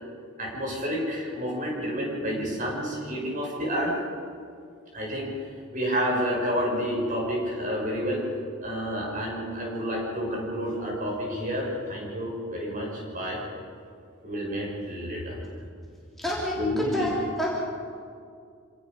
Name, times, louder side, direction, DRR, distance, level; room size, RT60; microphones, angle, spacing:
voice 1, 0.4-3.9 4.9-5.3 5.7-8.2 8.6-13.4 14.2-15.4 16.6-17.1, equal, 40° right, -2 dB, 6.2 m, -29 dB
voice 2, 16.2-17.5, equal, ahead, -6 dB, 3.1 m, -29 dB
27.0 x 18.0 x 5.4 m, 2.3 s
head